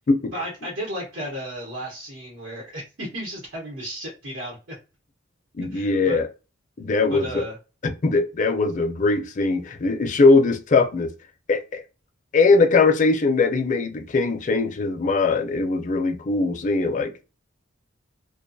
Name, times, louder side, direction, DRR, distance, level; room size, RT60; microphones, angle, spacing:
voice 1, 0.3-4.6 5.7-6.2 7.1-7.6, equal, 75° right, 1.0 m, -34 dB
voice 2, 5.6-6.3 6.8-7.4 7.8-11.1 11.5-11.8 12.3-17.2, left 3 dB, 40° left, 0.4 m, -21 dB
2.4 x 2.2 x 2.6 m
head